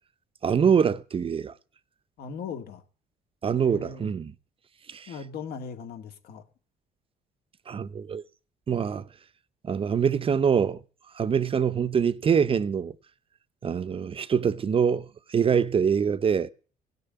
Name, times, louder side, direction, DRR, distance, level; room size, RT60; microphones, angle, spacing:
voice 1, 0.4-1.5 3.4-4.3 4.9-5.1 7.7-8.2 8.7-9.1 9.6-10.8 11.1-12.9 13.6-16.5, right 7 dB, 35° right, 0.6 m, -24 dB
voice 2, 2.2-2.8 3.6-4.1 5.1-6.4, left 6 dB, 70° left, 2.1 m, -38 dB
17.0 x 6.7 x 9.3 m
cardioid pair, 110°, 17 cm